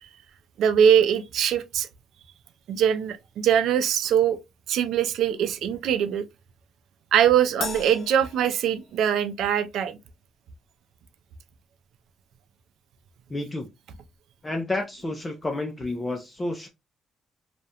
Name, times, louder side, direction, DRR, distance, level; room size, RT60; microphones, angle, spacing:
voice 1, 0.6-1.9 2.7-4.4 4.7-6.2 7.1-10.0, right 9 dB, 80° right, 0.3 m, -22 dB
Crash cymbal, 7.6-9.3, left 5 dB, 70° left, 0.6 m, -37 dB
voice 2, 13.3-13.7 14.4-16.7, left 2 dB, 20° left, 0.4 m, -30 dB
2.4 x 2.1 x 2.7 m
cardioid pair, 90°, 0 cm